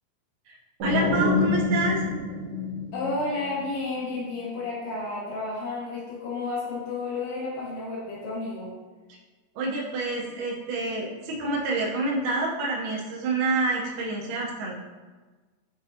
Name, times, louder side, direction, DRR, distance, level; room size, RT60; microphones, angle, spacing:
sound 1, 0.8-3.6, left 3 dB, 45° right, 1.8 m, -26 dB
voice 1, 0.8-2.0 9.6-14.7, right 3 dB, 70° right, -4 dB, 2.2 m, -28 dB
voice 2, 2.9-8.7, left 3 dB, 80° left, -6 dB, 3.6 m, -31 dB
8.8 x 3.8 x 2.8 m, 1.3 s
omnidirectional pair, 4.5 m